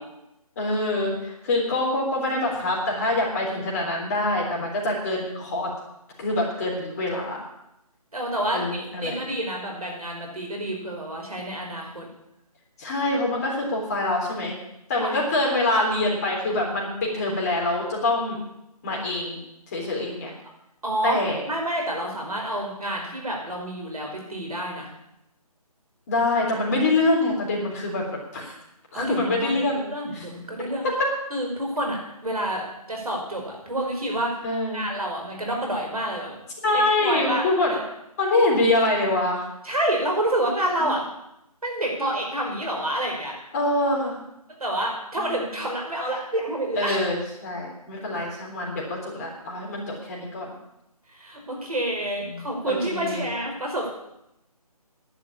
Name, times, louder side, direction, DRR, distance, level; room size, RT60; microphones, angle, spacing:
voice 1, 0.6-5.7 6.2-7.4 8.5-9.2 12.8-14.6 14.9-18.4 18.8-19.4 19.7-20.3 21.0-21.4 26.1-28.1 28.3-28.6 28.9-29.8 30.1-30.2 30.8-30.9 34.4-34.9 36.6-37.7 38.2-39.5 40.8-40.9 43.5-44.2 45.2-45.4 46.8-50.5 52.3-53.3, left 2 dB, 25° left, -2 dB, 3.6 m, -25 dB
voice 2, 8.1-12.1 15.0-15.2 20.8-21.2 21.5-24.9 28.9-30.9 31.3-34.3 34.7-36.4 36.7-37.8 39.6-41.0 41.6-43.3 44.6-47.0 49.1-49.3 51.1-53.9, right 1 dB, 70° right, 0 dB, 5.5 m, -28 dB
11.0 x 9.2 x 8.6 m, 0.84 s
figure-of-eight pair, 155°, 20 cm